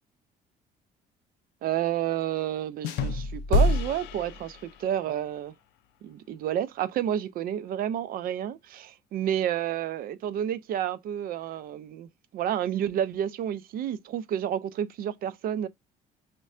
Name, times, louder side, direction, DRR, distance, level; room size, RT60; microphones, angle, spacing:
voice 1, 1.6-5.5 6.0-12.1 12.3-15.7, right 10 dB, 60° right, 0.4 m, -30 dB
sound 1, 2.8-5.0, left 2 dB, 85° left, 0.4 m, -27 dB
5.2 x 2.2 x 2.4 m
cardioid pair, 110°, 17 cm